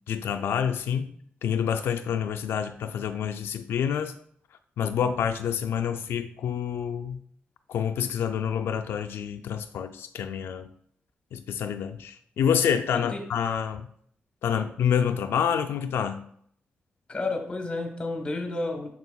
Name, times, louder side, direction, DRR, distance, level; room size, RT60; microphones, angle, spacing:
voice 1, 0.1-1.1 1.4-4.1 4.8-7.2 7.7-10.7 11.3-13.9 14.4-16.2, left 8 dB, 90° left, 7 dB, 0.4 m, -27 dB
voice 2, 17.1-18.9, left 2 dB, 25° left, 3 dB, 1.1 m, -31 dB
6.9 x 6.5 x 2.3 m, 0.64 s
wide cardioid pair, 165°, 4 cm